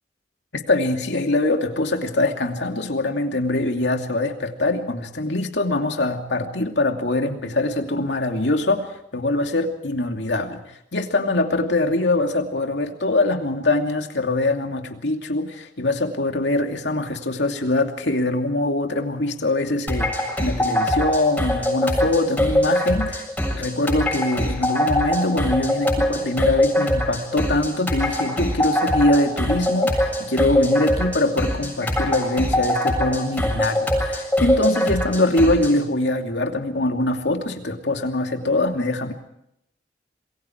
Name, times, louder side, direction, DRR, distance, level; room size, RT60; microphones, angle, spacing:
voice 1, 0.5-10.6 10.9-39.1, left 2 dB, 75° left, 4 dB, 2.7 m, -23 dB
sound 1, 19.9-35.8, left 1 dB, 10° left, 7.2 m, -23 dB
27.5 x 22.0 x 4.6 m, 0.77 s
head